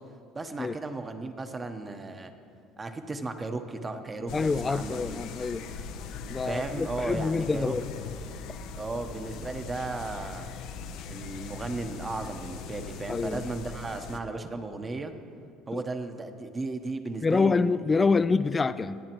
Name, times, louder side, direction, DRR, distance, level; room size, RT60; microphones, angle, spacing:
voice 1, 0.3-2.3 2.8-5.2 6.4-7.7 8.8-10.5 11.1-15.1 15.7-18.2, right 3 dB, 25° right, 6 dB, 1.0 m, -35 dB
sound 1, 4.3-14.2, left 5 dB, 70° left, 0.7 m, -40 dB
voice 2, 4.3-5.7 6.3-7.8 13.1-13.4 15.7-15.8 17.2-19.0, left 4 dB, 25° left, 13 dB, 0.3 m, -26 dB
24.0 x 8.4 x 3.0 m, 2.4 s
supercardioid pair, 80°, 0 cm